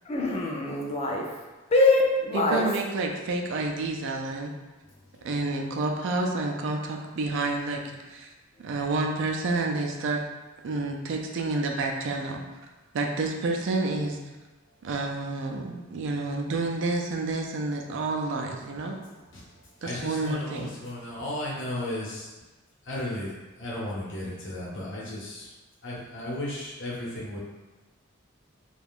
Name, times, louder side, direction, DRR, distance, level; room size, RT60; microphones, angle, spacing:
voice 1, 0.1-1.2 1.7-2.7, left 2 dB, 30° left, -1 dB, 0.4 m, -23 dB
voice 2, 2.3-4.5 5.2-7.8 8.1-8.3 8.6-10.2 10.6-12.4 12.9-14.2 14.8-19.0 19.8-20.7, right 3 dB, 60° right, 2 dB, 0.4 m, -29 dB
voice 3, 19.8-22.3 22.8-25.5 25.8-27.4, left 1 dB, 60° left, -6 dB, 0.9 m, -35 dB
2.5 x 2.3 x 3.4 m, 1.2 s
head